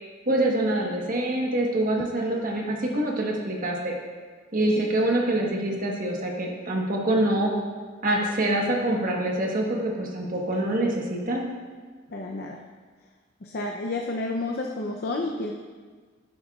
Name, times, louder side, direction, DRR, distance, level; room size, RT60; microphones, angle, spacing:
voice 1, 0.3-3.9 4.5-7.5 8.0-11.5, right 1 dB, 45° right, -1 dB, 1.3 m, -25 dB
voice 2, 12.1-12.6 13.4-15.5, left 2 dB, 55° left, 1 dB, 0.6 m, -31 dB
11.5 x 10.0 x 2.4 m, 1.5 s
head